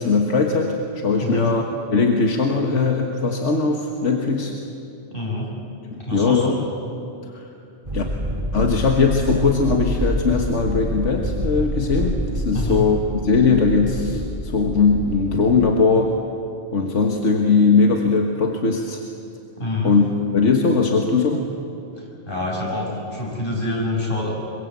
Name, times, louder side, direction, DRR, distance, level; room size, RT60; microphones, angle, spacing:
voice 1, 0.0-1.6 1.9-4.5 5.9-6.7 7.3-7.5 7.9-8.0 8.5-16.2 16.7-19.0 19.8-20.0 20.3-21.5, left 4 dB, 80° left, 2 dB, 1.8 m, -19 dB
voice 2, 5.1-5.5 6.0-6.6 12.5-12.8 19.6-19.9 22.0-24.3, left 2 dB, 45° left, -4 dB, 6.9 m, -26 dB
sound 1, 7.8-15.6, equal, 25° right, 2.7 m, -27 dB
25.5 x 23.5 x 8.3 m, 2.7 s
omnidirectional pair, 1.2 m